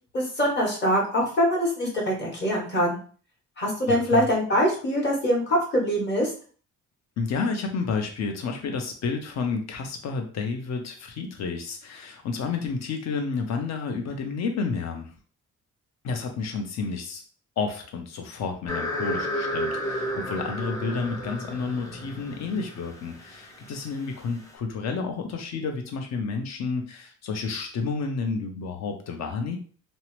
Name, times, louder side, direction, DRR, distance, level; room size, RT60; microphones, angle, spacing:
voice 1, 0.1-3.0 3.6-6.3, equal, 35° left, -2 dB, 1.0 m, -23 dB
voice 2, 3.9-4.3 7.2-15.1 16.0-17.2 17.6-29.6, left 4 dB, 60° left, 4 dB, 0.7 m, -30 dB
sound 1, 18.7-24.5, equal, 10° left, 0.6 m, -32 dB
2.7 x 2.0 x 3.0 m, 0.42 s
cardioid pair, 130°, 30 cm